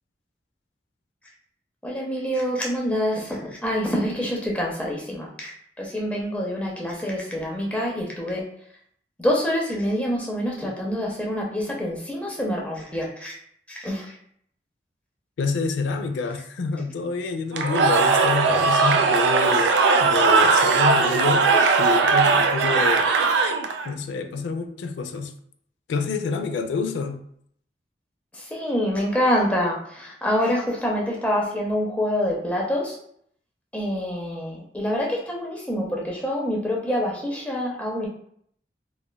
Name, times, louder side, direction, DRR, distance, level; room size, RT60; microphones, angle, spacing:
voice 1, 1.8-5.5 5.8-8.4 9.2-13.3 13.7-14.2 28.3-33.0 33.7-38.1, equal, 10° left, -3 dB, 0.5 m, -26 dB
voice 2, 15.4-19.7 20.0-21.5 21.8-23.1 23.8-25.3 25.9-27.2, left 4 dB, 85° left, 8 dB, 0.3 m, -27 dB
Cheering / Crowd, 17.5-23.9, right 4 dB, 75° right, 0.3 m, -19 dB
2.9 x 2.3 x 2.2 m, 0.66 s
head